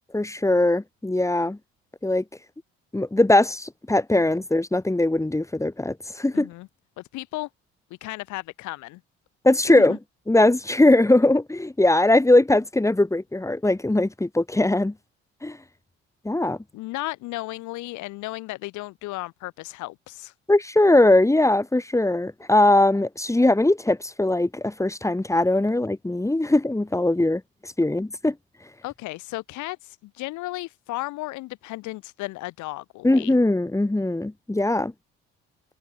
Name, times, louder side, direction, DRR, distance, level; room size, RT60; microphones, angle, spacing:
voice 1, 0.1-1.6 2.0-2.2 2.9-6.5 9.4-10.0 10.3-14.9 15.4-15.6 16.2-16.6 20.5-28.3 33.0-34.9, left 2 dB, 10° left, 1.7 m, -20 dB
voice 2, 6.3-6.7 7.0-7.5 8.0-9.0 9.7-10.0 16.7-20.3 28.8-33.4, left 19 dB, 80° left, 5.8 m, -34 dB
supercardioid pair, 70°, 29 cm